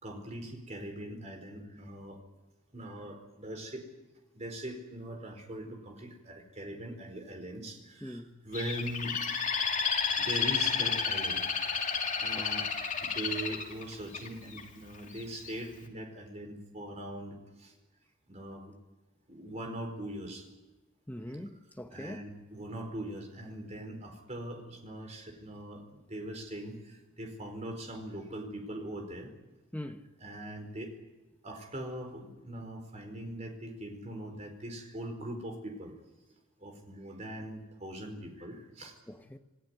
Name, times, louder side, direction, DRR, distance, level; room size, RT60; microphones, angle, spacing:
voice 1, 0.0-2.2 2.7-3.9 4.3-9.3 10.1-11.7 12.2-12.7 13.0-17.7 18.3-18.7 19.3-20.5 21.9-29.3 30.2-30.9 31.4-35.9 36.6-38.9, right 1 dB, 35° right, 4.6 m, -41 dB
voice 2, 8.0-8.4 12.4-12.5 21.1-22.2 29.7-30.1 39.1-39.4, left 1 dB, 10° left, 1.2 m, -42 dB
Bird, 8.5-14.6 15.2-15.6, left 6 dB, 35° left, 3.0 m, -31 dB
27.5 x 16.5 x 9.7 m
head